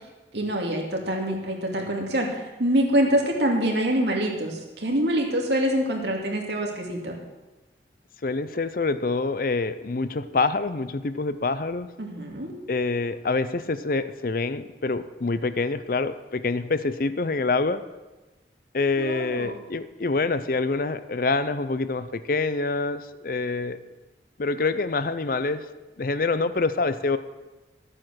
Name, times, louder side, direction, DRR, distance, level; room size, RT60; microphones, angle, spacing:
voice 1, 0.3-7.1 12.0-12.5 19.0-19.6, right 1 dB, 75° right, 0 dB, 2.4 m, -25 dB
voice 2, 8.2-11.9 12.7-17.8 18.7-23.8 24.4-25.7 26.0-27.2, left 3 dB, 50° left, 13 dB, 0.6 m, -26 dB
13.0 x 8.9 x 6.4 m, 1.1 s
head